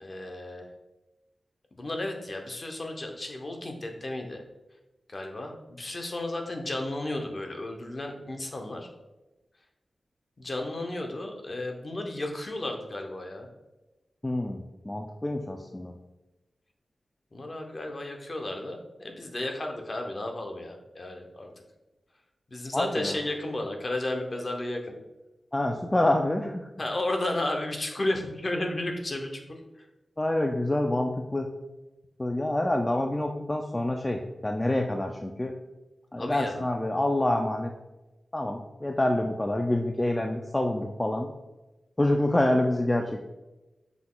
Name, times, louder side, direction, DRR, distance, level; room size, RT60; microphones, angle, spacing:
voice 1, 0.0-0.6 1.8-4.4 5.1-8.9 10.4-13.5 17.3-21.5 22.5-24.9 26.8-29.4 36.2-36.6, left 1 dB, 40° left, 3 dB, 0.7 m, -33 dB
voice 2, 14.2-15.9 22.7-23.2 25.5-26.7 30.2-31.5 32.2-35.5 36.1-37.7 38.3-41.3 42.0-43.2, left 1 dB, 20° left, 2 dB, 0.3 m, -27 dB
5.9 x 2.3 x 3.7 m, 1.0 s
wide cardioid pair, 95°, 0 cm